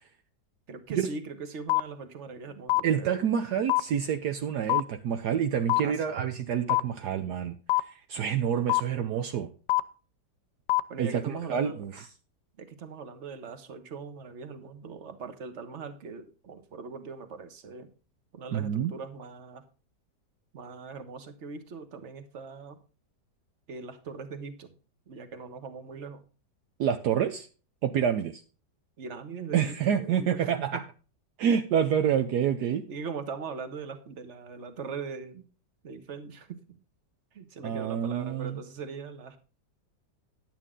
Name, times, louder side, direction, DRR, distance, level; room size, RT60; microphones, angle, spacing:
voice 1, 0.7-3.2 5.8-6.2 10.9-11.8 12.6-17.9 18.3-19.6 20.5-22.8 23.7-24.7 25.1-26.2 29.0-30.5 32.6-35.4 35.8-36.8 37.3-39.4, right 5 dB, 45° right, 9 dB, 1.5 m, -41 dB
sound 1, 1.7-1.8 2.7-2.8 3.7-3.8 4.7-4.8 5.7-5.8 6.7-6.8 7.7-7.8 8.7-8.8 9.7-9.8 10.7-10.8, left 18 dB, 85° left, 1.3 m, -22 dB
voice 2, 2.8-7.6 7.9-9.5 11.0-12.1 18.5-18.9 26.8-27.5 27.8-28.4 29.5-30.8 31.4-32.8 37.6-38.6, right 8 dB, 70° right, 7 dB, 1.3 m, -28 dB
10.5 x 9.0 x 3.7 m, 0.36 s
omnidirectional pair, 1.9 m